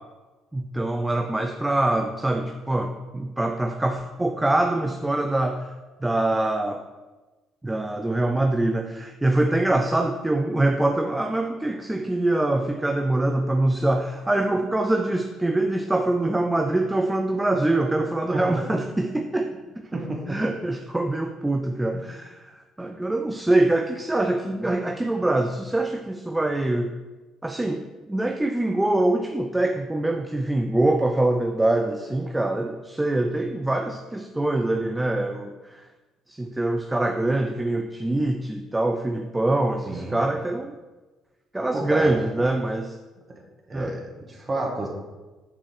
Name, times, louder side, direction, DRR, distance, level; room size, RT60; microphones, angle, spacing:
voice 1, 0.5-5.7 6.0-6.8 7.6-19.8 20.3-26.9 27.4-35.8 36.3-40.7 41.5-43.0 43.7-43.9, right 2 dB, 10° right, 5 dB, 0.5 m, -24 dB
voice 2, 19.9-20.4 39.8-40.2 41.7-42.1 43.7-44.0 44.3-44.9, right 2 dB, 30° right, -1 dB, 1.7 m, -29 dB
6.4 x 3.7 x 4.9 m, 1.2 s
figure-of-eight pair, 45°, 0 cm